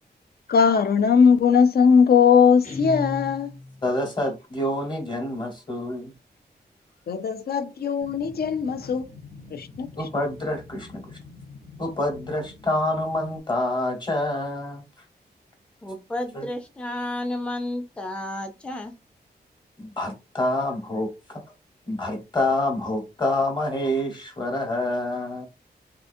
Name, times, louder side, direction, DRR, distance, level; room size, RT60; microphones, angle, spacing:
voice 1, 0.5-3.5 7.1-9.0 9.5-9.9, left 6 dB, 65° left, 0.5 m, -19 dB
Guitar, 2.6-3.9, left 2 dB, 45° left, 1.0 m, -34 dB
voice 2, 3.8-6.1 10.0-11.2 11.8-14.8 16.3-16.4 19.8-21.4 21.9-25.5, left 1 dB, 25° left, 1.2 m, -27 dB
sound 1, 8.0-13.4, left 3 dB, 85° left, 1.3 m, -45 dB
voice 3, 15.8-18.9, left 1 dB, 5° left, 0.5 m, -31 dB
3.7 x 2.5 x 2.6 m
wide cardioid pair, 120°, 17 cm